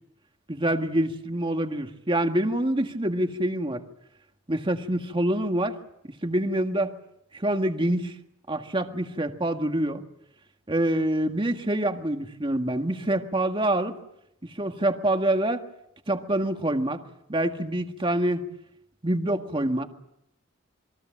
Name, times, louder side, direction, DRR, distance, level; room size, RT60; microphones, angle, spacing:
voice 1, 0.5-3.8 4.5-5.8 6.2-6.9 7.3-8.1 8.5-10.0 10.7-14.0 14.4-15.6 16.1-17.0 17.3-18.4 19.0-19.9, right 1 dB, 25° right, 5 dB, 1.8 m, -26 dB
28.0 x 22.5 x 7.6 m, 0.79 s
head